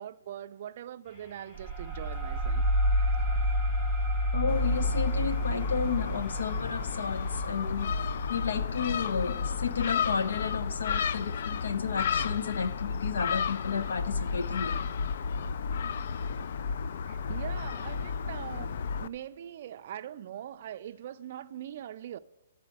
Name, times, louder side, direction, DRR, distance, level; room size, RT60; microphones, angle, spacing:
voice 1, 0.0-2.6 2.9-3.2 17.1-22.2, right 10 dB, 45° right, 0.4 m, -42 dB
sound 1, 1.0-7.4, left 2 dB, 15° left, 2.8 m, -56 dB
sound 2, 1.5-10.8, equal, 5° right, 0.8 m, -30 dB
voice 2, 4.3-8.0 8.3-14.9, left 6 dB, 85° left, 0.9 m, -32 dB
Gull seagull, 4.5-19.1, left 6 dB, 55° left, 0.3 m, -32 dB
12.0 x 4.1 x 7.8 m
hypercardioid pair, 160°, 0 cm